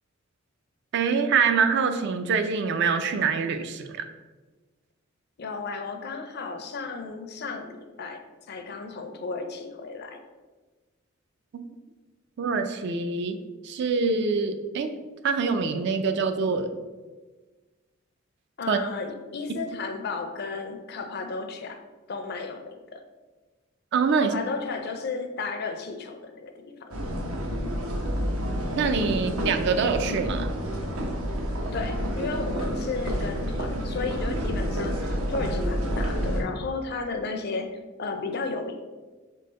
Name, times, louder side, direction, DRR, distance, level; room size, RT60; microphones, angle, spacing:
voice 1, 0.9-4.0 12.4-13.4 13.6-14.9 15.2-16.7 18.7-18.8 23.9-24.4 28.8-30.5, right 5 dB, 50° right, 8 dB, 0.3 m, -25 dB
voice 2, 5.4-8.2 8.5-10.2 18.6-21.8 22.1-23.0 24.2-27.0 31.7-38.8, left 4 dB, 50° left, 6 dB, 0.4 m, -34 dB
sound 1, 26.9-36.4, equal, 75° right, 0.7 m, -29 dB
3.8 x 3.6 x 3.8 m, 1.3 s
head